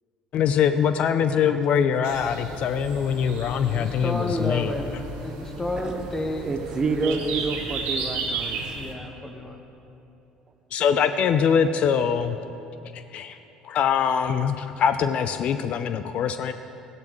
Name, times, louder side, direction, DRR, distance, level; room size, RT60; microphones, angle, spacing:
voice 1, 0.3-4.7 5.3-5.4 10.7-12.4 12.9-13.4 13.6-16.5, left 7 dB, 55° left, 10 dB, 0.4 m, -23 dB
sound 1, 2.0-8.9, right 4 dB, 70° right, 1.3 m, -34 dB
Bowed string instrument, 2.9-7.2, left 1 dB, 40° left, 1.2 m, -46 dB
voice 2, 3.7-6.6 7.0-7.4 8.7-9.6, left 1 dB, 20° left, 3 dB, 1.4 m, -31 dB
voice 3, 6.4-8.6, right 4 dB, 30° right, 8 dB, 0.7 m, -28 dB
14.5 x 10.5 x 3.1 m, 2.8 s
hypercardioid pair, 70°, 2 cm